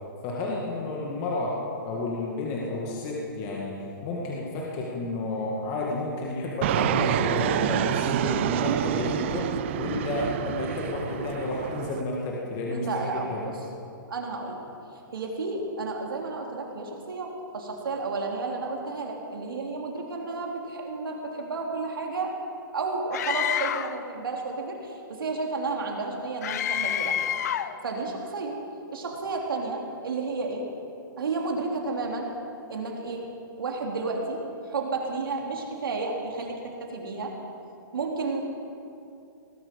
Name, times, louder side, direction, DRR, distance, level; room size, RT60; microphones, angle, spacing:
voice 1, 0.2-3.8 4.0-13.4, left 2 dB, 30° left, -3 dB, 1.9 m, -31 dB
Fixed-wing aircraft airplane, 6.6-12.0, right 12 dB, 35° right, 0.4 m, -27 dB
voice 2, 12.7-13.6 14.1-14.6 15.1-22.3 22.7-27.2 27.8-28.6 28.9-30.7 31.2-32.3 32.7-33.3 33.6-37.4 37.9-38.4, right 3 dB, 90° right, 1 dB, 3.0 m, -32 dB
Screaming, 23.1-24.0 26.4-27.8, left 10 dB, 50° left, 0.6 m, -28 dB
19.0 x 12.0 x 5.3 m, 2.6 s
hypercardioid pair, 160°, 11 cm